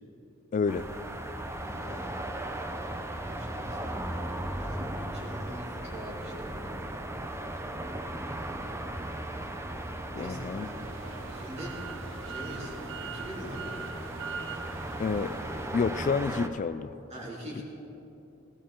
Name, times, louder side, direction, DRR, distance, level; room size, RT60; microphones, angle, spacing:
voice 1, 0.5-0.9 10.1-10.7 15.0-15.4 15.7-16.9, left 5 dB, 40° left, 13 dB, 0.3 m, -29 dB
sound 1, 0.6-16.4, right 1 dB, 85° right, 2.3 m, -49 dB
sound 2, 0.7-16.5, right 1 dB, 15° right, 0.7 m, -37 dB
voice 2, 1.6-2.2 2.4-2.9 3.2-7.0 8.4-8.6 10.2-10.8 11.3-11.8 12.3-12.7 13.0-13.8 17.1-17.6, equal, 35° right, -4 dB, 3.4 m, -44 dB
sound 3, 10.5-15.7, right 6 dB, 65° right, 0.7 m, -42 dB
18.5 x 18.0 x 3.8 m, 2.9 s
head